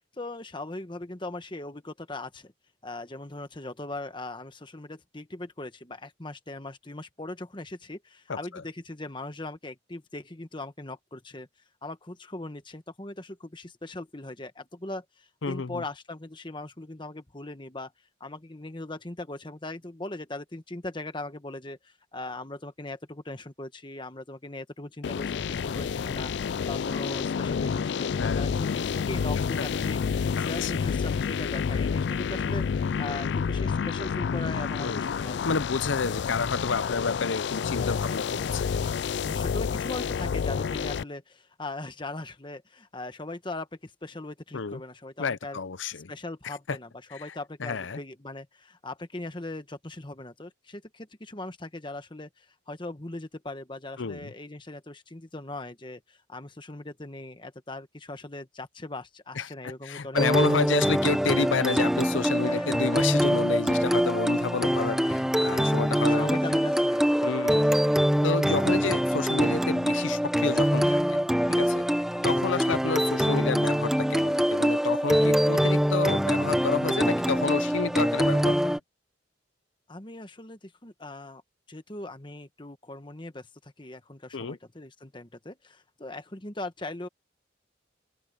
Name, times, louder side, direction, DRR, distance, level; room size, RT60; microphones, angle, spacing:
voice 1, 0.2-2.5 2.8-11.5 11.8-17.9 18.2-26.3 26.7-30.0 30.4-35.5 37.8-38.5 39.2-45.6 45.9-60.7 62.4-62.9 64.6-65.2 66.0-67.3 72.0-72.3 79.9-81.4 81.7-87.1, left 2 dB, 25° left, 1.3 m, -40 dB
voice 2, 8.3-8.6 15.4-15.8 28.2-28.5 30.4-30.7 34.8-35.2 35.4-38.8 44.5-44.8 45.2-46.1 46.4-46.8 47.1-47.3 47.6-48.0 54.0-54.3 59.4-66.4 67.2-67.7 68.2-71.2 71.5-71.8 72.2-78.8 84.3-84.6, left 4 dB, 75° left, 0.7 m, -30 dB
sound 1, 25.0-41.0, left 6 dB, 60° left, 0.3 m, -29 dB
sound 2, 60.2-78.8, equal, ahead, 0.9 m, -24 dB
open air
head